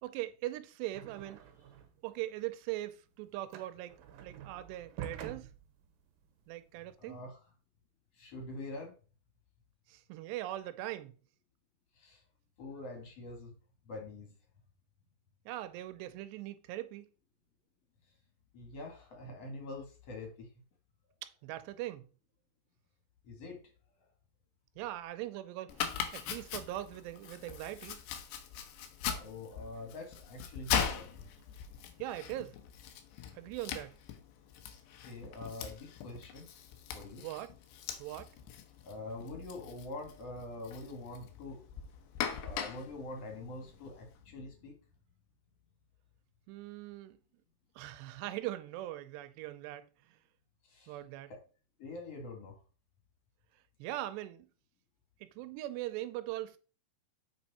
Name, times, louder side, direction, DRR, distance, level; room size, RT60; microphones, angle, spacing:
voice 1, 0.0-1.4 2.0-5.5 6.5-7.2 9.9-11.1 15.5-17.1 21.2-22.1 24.8-25.9 26.1-28.0 32.0-32.6 33.3-34.0 37.2-37.5 38.0-38.3 46.5-47.2 47.8-50.2 50.9-51.3 53.8-54.5 55.2-56.6, right 15 dB, 90° right, 2.9 m, -41 dB
sound 1, 0.9-2.1 2.4-7.0, right 9 dB, 70° right, 2.3 m, -48 dB
voice 2, 7.0-7.4 8.1-8.9 12.0-12.2 12.6-13.5 13.8-14.3 18.5-20.5 23.2-23.7 29.2-31.3 35.1-36.4 36.9-37.3 38.8-41.6 42.4-44.8 50.7-51.0 51.3-51.4 51.8-52.6, left 2 dB, 45° left, 2.6 m, -45 dB
Domestic sounds home sounds, 25.7-44.1, left 8 dB, 90° left, 3.1 m, -41 dB
7.6 x 5.5 x 4.2 m
omnidirectional pair, 4.8 m